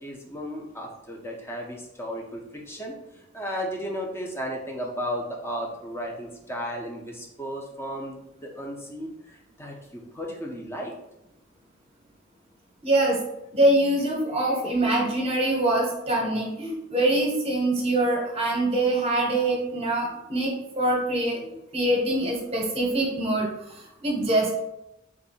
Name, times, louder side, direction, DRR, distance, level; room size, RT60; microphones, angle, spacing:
voice 1, 0.0-3.0 3.3-9.1 9.6-10.9 14.3-14.6, equal, 10° left, 0 dB, 0.6 m, -34 dB
voice 2, 12.8-13.2 13.5-23.5 24.0-24.5, right 1 dB, 30° right, 0 dB, 0.9 m, -24 dB
3.6 x 2.6 x 4.1 m, 0.85 s
head